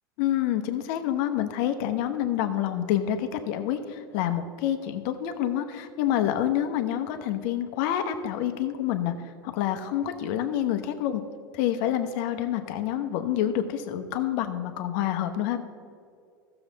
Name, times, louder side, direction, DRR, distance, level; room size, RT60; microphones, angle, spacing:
voice 1, 0.2-11.2 11.5-15.6, left 11 dB, 55° left, 8 dB, 1.0 m, -27 dB
15.0 x 7.0 x 4.0 m, 2.3 s
hypercardioid pair, 85°, 11 cm